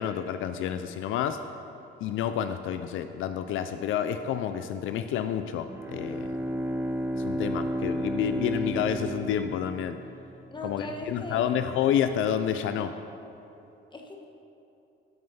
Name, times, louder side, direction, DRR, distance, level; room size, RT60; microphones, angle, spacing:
voice 1, 0.0-1.4 2.0-6.3 7.1-10.0 10.6-12.9, left 9 dB, 80° left, 9 dB, 0.5 m, -29 dB
Bowed string instrument, 5.7-10.2, right 1 dB, 10° right, 0.5 m, -32 dB
voice 2, 10.5-11.6 13.9-14.2, left 1 dB, 25° left, 2 dB, 1.4 m, -38 dB
13.0 x 5.6 x 5.6 m, 2.9 s
cardioid pair, 90°, 20 cm